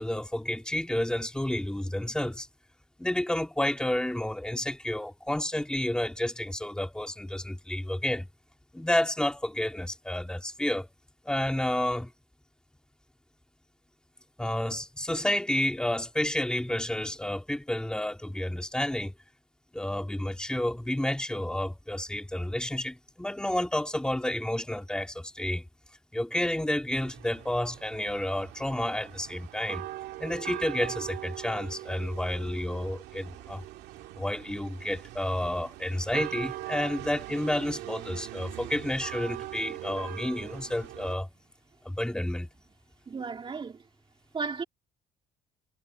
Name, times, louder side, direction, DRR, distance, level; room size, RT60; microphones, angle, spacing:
voice 1, 0.0-2.5 3.0-8.3 8.7-10.9 11.2-12.1 14.4-19.1 19.7-25.6 26.1-29.9 30.2-33.6 34.2-41.3 41.8-42.5, left 1 dB, 5° left, 2.4 m, -30 dB
sound 1, 26.9-41.1, right 16 dB, 90° right, 2.0 m, -41 dB
voice 2, 43.1-43.8 44.3-44.6, right 5 dB, 30° right, 3.0 m, -34 dB
cardioid pair, 110°, 17 cm